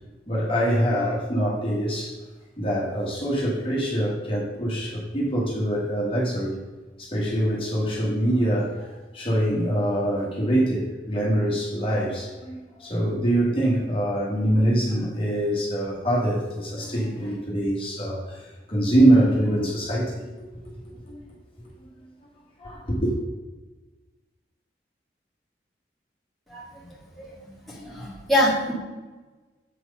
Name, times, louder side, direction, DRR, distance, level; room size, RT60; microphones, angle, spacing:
voice 1, 0.3-2.2 2.6-6.6 7.0-20.3 21.1-21.2 22.6-23.1, right 1 dB, 30° left, -4 dB, 1.5 m, -24 dB
voice 2, 27.2-28.7, left 1 dB, ahead, -7 dB, 1.9 m, -25 dB
7.8 x 4.6 x 5.3 m, 1.2 s
head